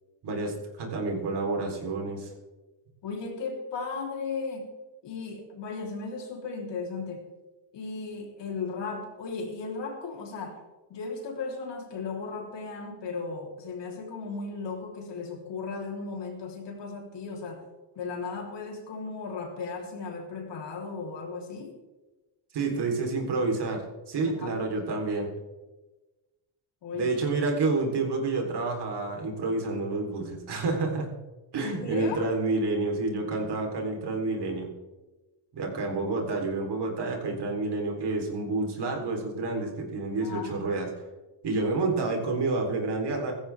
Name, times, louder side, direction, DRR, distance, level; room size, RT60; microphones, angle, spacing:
voice 1, 0.2-2.3 22.5-25.3 26.9-31.1 31.5-34.7 35.5-40.9 41.4-43.3, right 3 dB, 60° right, 1 dB, 3.8 m, -29 dB
voice 2, 3.0-4.7 5.0-7.3 7.7-10.6 10.9-17.7 18.0-21.8 24.2-24.6 26.8-27.2 31.6-32.3 40.2-40.6, left 4 dB, 70° left, 1 dB, 3.7 m, -36 dB
16.0 x 14.5 x 3.5 m, 1.1 s
cardioid pair, 110°, 45 cm